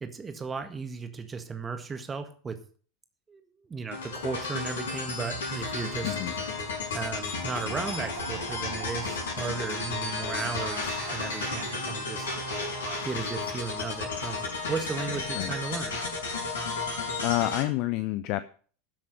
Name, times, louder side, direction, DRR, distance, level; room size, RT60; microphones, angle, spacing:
voice 1, 0.0-2.6 3.3-6.2 6.9-12.3 13.0-16.0, right 5 dB, 20° right, 8 dB, 1.7 m, -35 dB
sound 1, 3.9-17.6, left 3 dB, 65° left, 5.3 m, -33 dB
voice 2, 6.0-6.3 15.3-15.5 17.2-18.4, left 17 dB, 45° left, 13 dB, 0.6 m, -28 dB
sound 2, 6.2-6.3 6.6-6.7 7.1-13.2, right 8 dB, 60° right, 1.9 m, -43 dB
13.5 x 7.5 x 5.5 m, 0.43 s
figure-of-eight pair, 80°, 0 cm